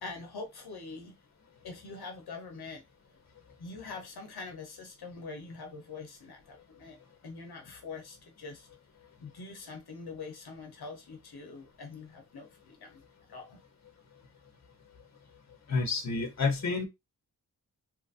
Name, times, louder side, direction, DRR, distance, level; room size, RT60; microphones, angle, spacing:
voice 1, 0.0-1.1 1.6-2.8 3.6-7.0 7.2-8.7 9.2-13.0 13.3-13.6, left 4 dB, 75° left, 0.9 m, -44 dB
voice 2, 15.7-16.8, left 4 dB, 45° left, 0.9 m, -29 dB
2.9 x 2.4 x 2.6 m
wide cardioid pair, 80°, 38 cm